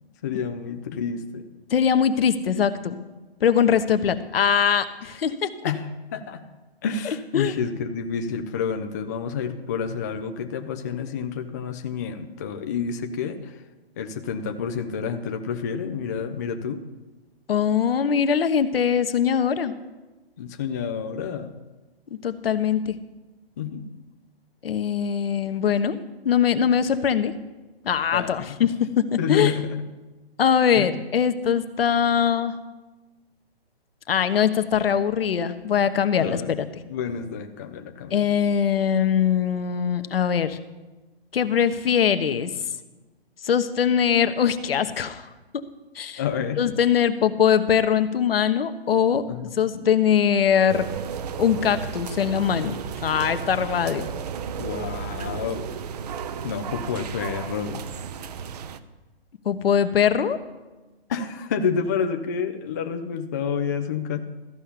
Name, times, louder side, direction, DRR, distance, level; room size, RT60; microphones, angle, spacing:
voice 1, 0.2-1.5 5.6-6.4 6.8-13.6 14.0-16.8 20.4-21.5 23.6-23.8 28.1-28.7 29.2-29.9 30.8-30.9 36.2-36.6 36.9-38.2 46.2-46.8 49.3-49.9 54.6-55.7 56.4-57.8 61.1-64.2, left 6 dB, 20° left, 5 dB, 0.4 m, -29 dB
voice 2, 1.7-3.0 3.4-5.7 7.3-7.5 17.5-19.7 22.2-22.9 24.6-26.0 26.2-27.3 27.8-29.5 30.4-32.6 34.1-36.7 38.1-40.6 41.3-42.5 43.4-45.2 45.5-45.6 45.9-46.2 46.6-49.2 49.6-50.9 51.4-54.1 59.4-60.4, left 8 dB, 65° left, 10 dB, 1.1 m, -22 dB
sound 1, 50.7-58.8, right 7 dB, 40° right, 0.7 m, -33 dB
13.5 x 5.5 x 8.3 m, 1.2 s
hypercardioid pair, 140°, 31 cm